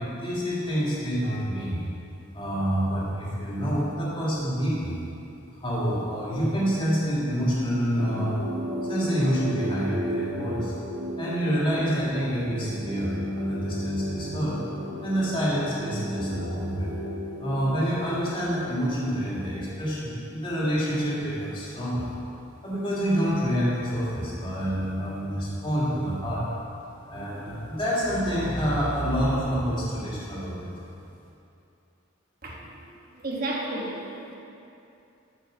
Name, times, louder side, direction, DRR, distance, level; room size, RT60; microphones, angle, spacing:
voice 1, 0.0-1.8 2.3-5.0 5.5-8.4 8.8-10.7 11.2-14.6 15.0-17.0 17.4-22.1 22.6-26.5 27.0-30.7, equal, 25° left, -7 dB, 1.9 m, -27 dB
sound 1, 8.0-19.9, equal, 90° right, 1.1 m, -34 dB
voice 2, 32.4-32.9 33.1-34.3, right 2 dB, 45° right, -2 dB, 1.3 m, -33 dB
12.5 x 4.9 x 5.0 m, 2.7 s
head